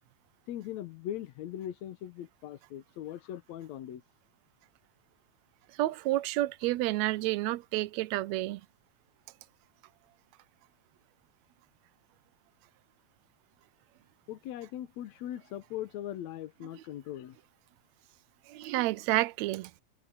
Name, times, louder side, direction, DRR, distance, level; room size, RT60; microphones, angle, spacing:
voice 1, 0.5-4.0 14.3-17.4, left 11 dB, 70° left, 2.3 m, -40 dB
voice 2, 5.8-8.6 18.5-19.7, right 17 dB, 75° right, 1.8 m, -30 dB
omnidirectional pair, 3.4 m